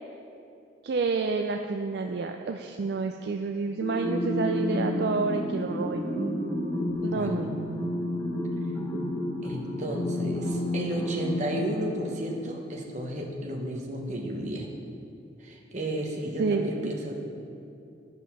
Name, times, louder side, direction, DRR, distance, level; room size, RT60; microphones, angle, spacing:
voice 1, 0.8-6.1 7.0-8.0 16.1-16.9, right 4 dB, 60° right, 4 dB, 0.4 m, -30 dB
sound 1, 3.8-12.6, left 1 dB, 20° left, 0.9 m, -30 dB
voice 2, 9.4-14.7 15.4-17.1, right 1 dB, 40° right, 0 dB, 1.0 m, -33 dB
11.0 x 5.2 x 5.6 m, 2.6 s
head